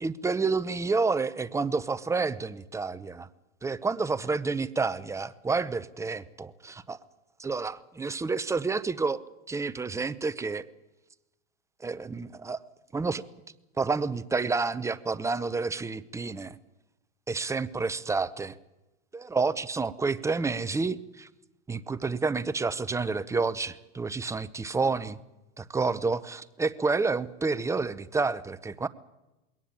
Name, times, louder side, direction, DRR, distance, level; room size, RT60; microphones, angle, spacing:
voice 1, 0.0-3.3 3.6-7.0 7.4-9.2 9.5-10.7 11.8-12.6 12.9-13.2 13.8-16.6 17.3-18.6 19.1-21.3 21.7-25.2 25.6-28.9, right 4 dB, 10° right, 16 dB, 0.7 m, -29 dB
21.0 x 18.0 x 8.6 m, 1.0 s
supercardioid pair, 120°, 36 cm